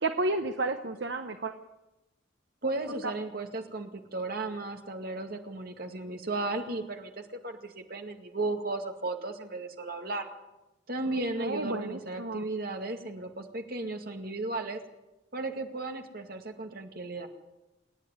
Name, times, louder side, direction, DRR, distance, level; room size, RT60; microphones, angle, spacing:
voice 1, 0.0-1.5 11.4-12.4, right 2 dB, 70° right, 6 dB, 1.1 m, -31 dB
voice 2, 2.6-10.3 10.9-14.8 15.3-17.3, right 2 dB, 55° right, 4 dB, 2.2 m, -35 dB
27.5 x 10.0 x 9.6 m, 0.99 s
head